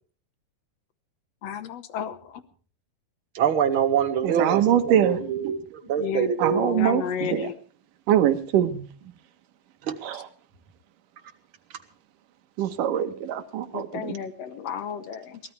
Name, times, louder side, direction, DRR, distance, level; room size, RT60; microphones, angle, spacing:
voice 1, 1.4-2.4 6.0-7.6 13.7-15.4, left 8 dB, 65° left, 11 dB, 1.9 m, -32 dB
voice 2, 3.4-6.6 9.9-10.0, right 8 dB, 50° right, 8 dB, 1.8 m, -25 dB
voice 3, 4.2-5.2 5.4-5.5 6.4-7.0 7.3-7.5 8.1-8.7 10.0-10.3 12.6-14.1, right 10 dB, 80° right, 9 dB, 2.7 m, -23 dB
23.0 x 17.5 x 3.3 m, 0.41 s
omnidirectional pair, 3.8 m